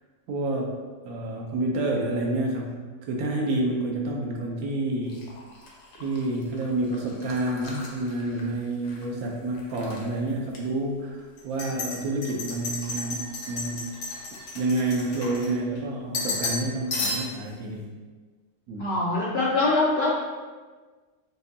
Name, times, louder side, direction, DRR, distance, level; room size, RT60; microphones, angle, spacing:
voice 1, 0.3-5.3 6.0-13.9 14.3-17.9 18.7-18.9, right 2 dB, 70° right, -1 dB, 0.9 m, -29 dB
sound 1, 5.1-9.1 9.4-10.0 10.5-10.6 11.4-15.8 16.1-16.7 16.9-17.5, left 2 dB, 60° left, 0.9 m, -34 dB
voice 2, 18.8-20.2, left 2 dB, 80° left, -5 dB, 0.5 m, -23 dB
5.2 x 2.2 x 2.6 m, 1.4 s
omnidirectional pair, 1.8 m